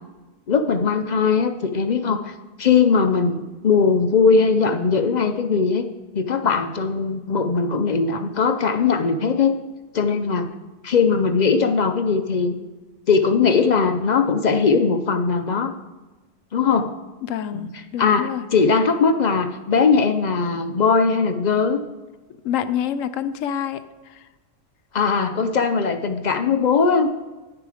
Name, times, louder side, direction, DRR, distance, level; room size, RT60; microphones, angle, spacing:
voice 1, 0.5-2.3 2.6-5.9 6.1-9.6 9.9-10.5 10.8-12.6 13.1-15.7 16.5-16.9 17.5-17.7 18.0-21.8 24.9-27.1, left 5 dB, 55° left, 7 dB, 0.4 m, -19 dB
voice 2, 17.2-18.4 22.4-24.2, left 9 dB, 75° left, 11 dB, 1.0 m, -27 dB
9.9 x 6.8 x 4.9 m, 1.2 s
omnidirectional pair, 1.4 m